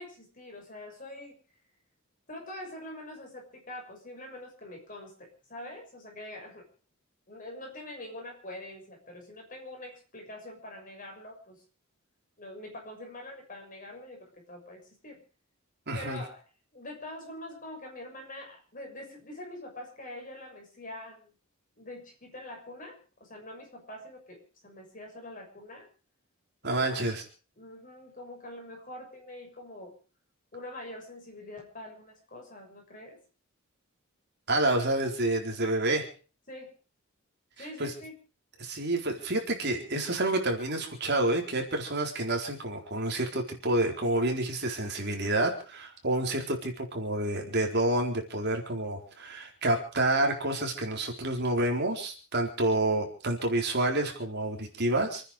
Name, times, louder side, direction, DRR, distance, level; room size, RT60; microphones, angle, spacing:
voice 1, 0.0-1.4 2.3-6.7 7.3-11.6 12.4-15.2 15.9-16.4 16.7-21.3 21.8-25.9 26.6-27.2 27.6-29.9 30.5-33.2 36.5-36.7 37.6-38.2, left 1 dB, 40° left, 2 dB, 6.5 m, -44 dB
voice 2, 15.9-16.2 26.6-27.2 34.5-36.1 37.8-37.9 38.6-55.2, right 2 dB, 50° right, 2 dB, 4.2 m, -28 dB
28.0 x 10.0 x 5.1 m, 0.37 s
head